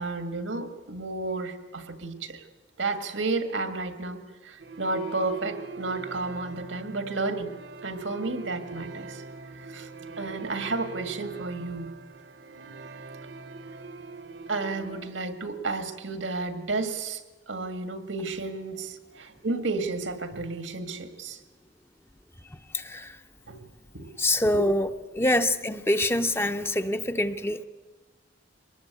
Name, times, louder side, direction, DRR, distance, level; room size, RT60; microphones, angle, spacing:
voice 1, 0.0-2.4 2.8-9.2 9.6-9.9 10.2-11.9 14.5-21.4 23.4-23.7 23.9-24.1 24.5-24.6, right 3 dB, 90° right, 8 dB, 1.9 m, -32 dB
sound 1, 4.6-15.1, right 4 dB, 65° right, 1.0 m, -42 dB
voice 2, 22.4-23.2 24.2-24.9 25.1-27.6, left 1 dB, 15° left, 9 dB, 0.7 m, -25 dB
23.5 x 20.5 x 8.3 m, 1.3 s
head